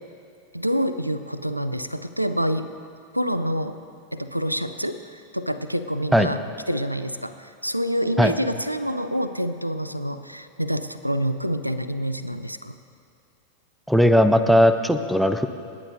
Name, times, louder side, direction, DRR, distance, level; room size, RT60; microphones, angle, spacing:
voice 1, 0.5-2.7 3.1-3.8 4.1-6.4 6.7-12.7, equal, 90° right, 12 dB, 0.4 m, -27 dB
voice 2, 13.9-15.5, equal, ahead, 9 dB, 0.6 m, -17 dB
28.0 x 9.6 x 2.6 m, 2.4 s
figure-of-eight pair, 90°, 0 cm